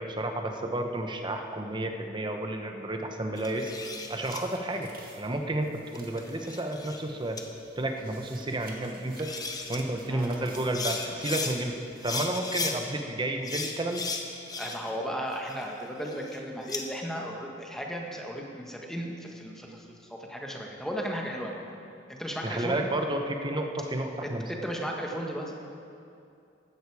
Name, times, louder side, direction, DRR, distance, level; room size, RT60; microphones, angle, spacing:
voice 1, 0.0-3.7 4.1-4.9 5.2-7.4 7.8-9.3 9.7-11.8 12.0-14.1 22.4-24.4, right 1 dB, 25° right, 4 dB, 1.0 m, -31 dB
sound 1, 3.4-4.4 6.0-7.0 7.4-7.5 8.8-8.9 9.2-9.8 10.5-11.5 12.0-12.8 13.4-15.0 15.3-16.8, left 4 dB, 20° left, 0.9 m, -35 dB
sound 2, 3.5-12.1, right 3 dB, 50° right, 1.8 m, -52 dB
voice 2, 10.1-10.5 14.6-21.6 22.1-22.8 24.2-25.6, equal, ahead, 0 dB, 1.4 m, -35 dB
15.5 x 11.5 x 4.8 m, 2.5 s
head